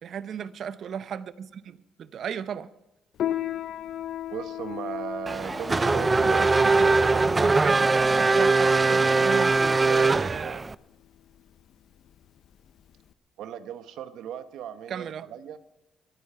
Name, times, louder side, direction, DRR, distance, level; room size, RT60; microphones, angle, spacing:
voice 1, 0.0-2.7 6.2-9.5 9.8-10.6 14.9-15.3, right 8 dB, 65° right, 0.7 m, -36 dB
Piano, 3.2-13.1, left 12 dB, 70° left, 0.6 m, -37 dB
voice 2, 4.3-6.7 13.4-15.6, right 9 dB, 85° right, 0.9 m, -37 dB
Race car auto racing / Accelerating revving vroom, 5.3-10.7, right 3 dB, 25° right, 0.4 m, -21 dB
23.0 x 8.8 x 5.6 m
cardioid pair, 90°, 0 cm